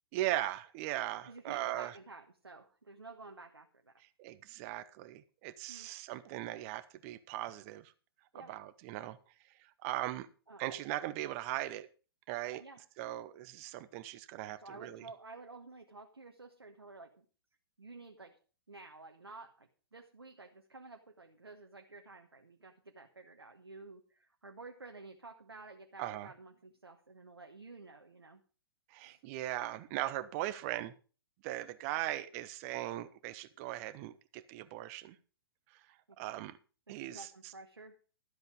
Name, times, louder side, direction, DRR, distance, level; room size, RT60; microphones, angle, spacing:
voice 1, 0.1-1.9 4.2-7.9 8.5-9.2 9.8-10.3 10.6-11.9 12.3-12.6 13.0-15.1 26.0-26.3 28.9-30.9 31.4-35.1 36.2-36.6 36.9-37.3, right 14 dB, 35° right, 14 dB, 1.0 m, -39 dB
voice 2, 1.2-3.9 5.7-5.9 8.3-8.5 10.5-10.7 12.6-12.8 14.6-17.2 17.8-18.4 18.7-28.4 29.0-29.2 32.0-32.2 36.9-38.0, right 3 dB, 80° right, 4 dB, 1.3 m, -52 dB
13.0 x 8.1 x 5.1 m, 0.37 s
figure-of-eight pair, 110°, 13 cm